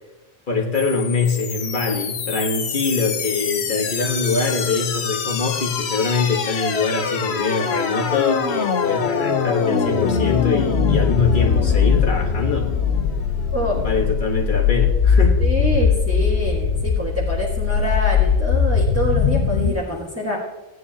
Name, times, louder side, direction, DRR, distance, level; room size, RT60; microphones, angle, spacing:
voice 1, 0.5-12.7 13.7-15.4, left 4 dB, 50° left, 0 dB, 1.6 m, -23 dB
sound 1, 0.8-19.7, left 6 dB, 80° left, 1.1 m, -21 dB
voice 2, 15.4-20.4, equal, 15° right, -6 dB, 1.5 m, -26 dB
16.0 x 9.6 x 2.9 m, 1.0 s
omnidirectional pair, 1.1 m